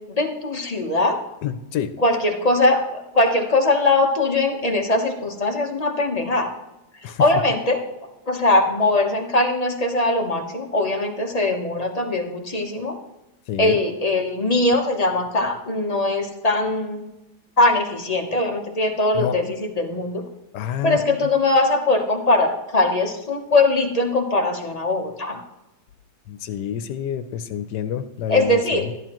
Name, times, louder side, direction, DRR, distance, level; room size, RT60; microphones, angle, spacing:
voice 1, 0.1-1.1 2.0-6.5 7.0-7.8 8.3-13.0 13.6-17.1 17.6-20.2 20.8-25.4 28.3-28.9, left 2 dB, 30° left, 3 dB, 0.9 m, -21 dB
voice 2, 1.4-1.9 7.0-7.2 13.5-13.8 19.1-19.5 20.5-21.0 26.3-28.8, left 9 dB, 80° left, 11 dB, 1.3 m, -28 dB
12.5 x 11.0 x 3.0 m, 0.94 s
omnidirectional pair, 1.8 m